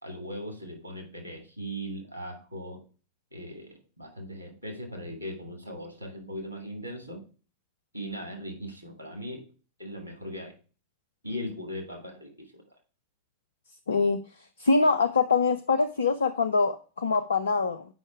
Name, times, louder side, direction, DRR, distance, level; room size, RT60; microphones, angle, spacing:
voice 1, 0.0-2.8 3.3-7.2 7.9-9.4 9.8-10.5 11.2-12.6, equal, 90° left, 3 dB, 2.8 m, -39 dB
voice 2, 13.9-14.2 14.6-17.9, left 4 dB, 70° left, 10 dB, 0.5 m, -24 dB
7.8 x 5.4 x 4.6 m, 0.36 s
figure-of-eight pair, 90°, 0 cm